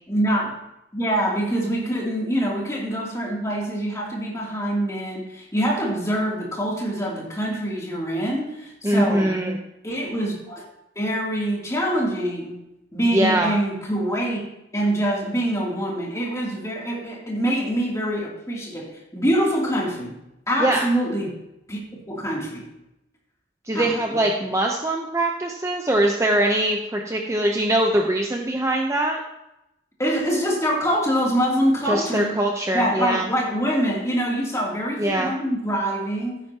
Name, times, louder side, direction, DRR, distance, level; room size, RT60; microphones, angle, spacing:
voice 1, 0.1-0.5 0.9-9.3 9.8-10.6 10.9-12.6 12.9-14.4 14.7-20.2 20.5-21.4 21.7-21.8 22.1-22.7 23.7-24.2 30.0-32.3 32.7-36.4, equal, 15° left, -3 dB, 2.9 m, -25 dB
voice 2, 8.8-9.6 13.1-13.5 20.6-20.8 23.7-29.2 31.9-33.3 35.0-35.3, right 1 dB, 15° right, 1 dB, 0.8 m, -22 dB
15.5 x 9.2 x 2.9 m, 0.87 s
head